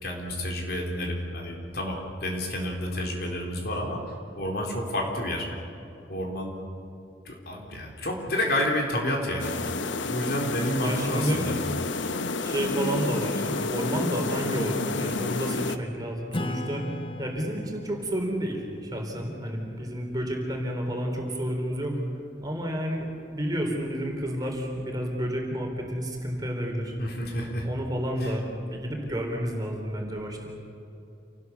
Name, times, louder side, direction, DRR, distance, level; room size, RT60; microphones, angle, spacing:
voice 1, 0.0-4.0 4.3-5.5 6.1-6.5 7.2-9.5 10.0-11.6 27.0-27.7 28.2-28.4, left 1 dB, 55° left, 0 dB, 4.1 m, -30 dB
sound 1, 9.4-15.8, left 3 dB, 75° left, 1.0 m, -30 dB
voice 2, 10.7-11.4 12.4-16.8 17.2-22.0 22.4-23.1 23.3-26.9 27.6-28.4 28.7-30.5, equal, 20° right, 1 dB, 4.0 m, -30 dB
Acoustic guitar / Strum, 16.3-21.3, left 1 dB, 25° left, 0.6 m, -39 dB
28.0 x 19.0 x 7.1 m, 2.9 s
head